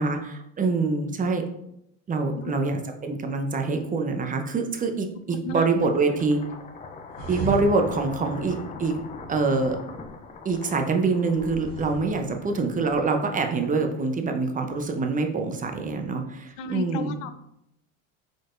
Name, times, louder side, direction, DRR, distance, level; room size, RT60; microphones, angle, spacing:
voice 1, 0.0-1.4 2.1-6.4 7.3-9.0 9.3-9.8 10.4-17.1, right 3 dB, 20° right, 5 dB, 0.6 m, -25 dB
voice 2, 5.3-5.7 16.6-17.3, left 4 dB, 70° left, 11 dB, 0.6 m, -34 dB
sound 1, 5.8-14.0, left 4 dB, 20° left, 0.4 m, -42 dB
sound 2, 7.1-9.8 11.3-13.0, right 2 dB, 75° right, 1.1 m, -38 dB
4.7 x 4.2 x 2.5 m, 0.79 s
supercardioid pair, 100°, 38 cm